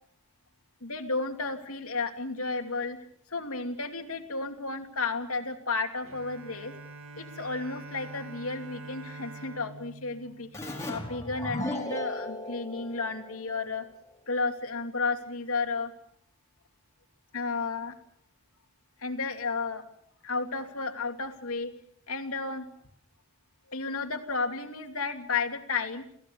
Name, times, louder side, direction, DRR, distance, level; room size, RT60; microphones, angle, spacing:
voice 1, 0.8-3.0 3.3-6.7 7.2-10.5 10.9-13.9 14.3-15.9 17.3-18.0 19.0-19.8 20.2-21.7 22.1-22.7 23.7-26.0, left 4 dB, 85° left, 5 dB, 2.8 m, -32 dB
Bowed string instrument, 6.0-11.5, right 2 dB, 70° right, 2.1 m, -46 dB
Keyboard (musical), 10.5-13.9, left 1 dB, 15° left, 4.8 m, -37 dB
29.0 x 16.0 x 7.0 m, 0.68 s
head